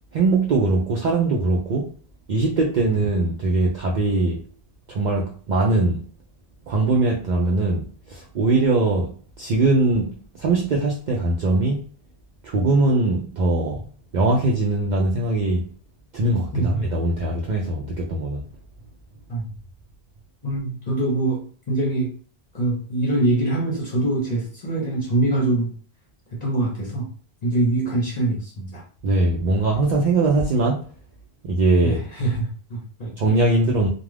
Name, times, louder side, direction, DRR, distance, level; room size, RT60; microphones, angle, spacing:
voice 1, 0.1-1.9 2.3-4.4 4.9-6.1 6.7-11.8 12.4-13.9 14.1-15.7 16.1-18.4 29.0-30.8 31.4-32.1 33.2-33.9, right 2 dB, 55° right, -2 dB, 0.6 m, -21 dB
voice 2, 20.4-22.1 22.5-25.7 26.4-27.1 27.4-28.8 31.8-33.1, right 2 dB, 45° left, -3 dB, 0.8 m, -24 dB
2.3 x 2.2 x 3.2 m, 0.43 s
omnidirectional pair, 1.0 m